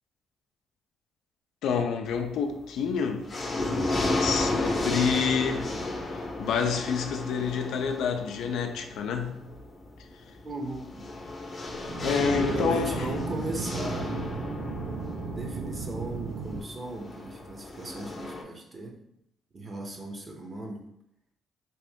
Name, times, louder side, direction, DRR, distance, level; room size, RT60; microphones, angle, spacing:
voice 1, 1.6-3.3 4.2-5.8 6.1-9.4 12.0-13.0, left 6 dB, 80° left, 5 dB, 0.4 m, -28 dB
sound 1, 2.1-2.6 3.0-18.4, left 2 dB, 35° left, 0.7 m, -34 dB
voice 2, 10.4-11.0 12.2-14.6 15.3-19.0 19.5-20.9, right 1 dB, 35° right, 2 dB, 0.7 m, -37 dB
sound 2, 11.7-16.6, right 4 dB, 75° right, 0.6 m, -34 dB
2.9 x 2.6 x 3.4 m, 0.77 s
cardioid pair, 85°, 0 cm